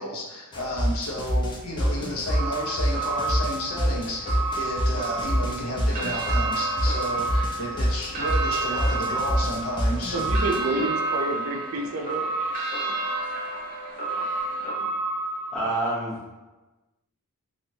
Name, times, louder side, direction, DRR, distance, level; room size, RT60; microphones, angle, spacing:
voice 1, 0.0-10.2, equal, 75° left, -2 dB, 0.7 m, -32 dB
sound 1, 0.5-10.6, equal, 20° left, 0.4 m, -26 dB
sound 2, 0.9-14.7, right 2 dB, 40° right, 0.7 m, -37 dB
sound 3, 2.3-15.6, right 3 dB, 40° left, 0.8 m, -31 dB
voice 2, 10.1-12.2 12.6-12.7 13.0-13.1, right 2 dB, 65° right, 3 dB, 0.4 m, -29 dB
voice 3, 15.5-16.4, right 2 dB, ahead, -9 dB, 0.9 m, -28 dB
3.0 x 2.4 x 2.7 m, 1.1 s
head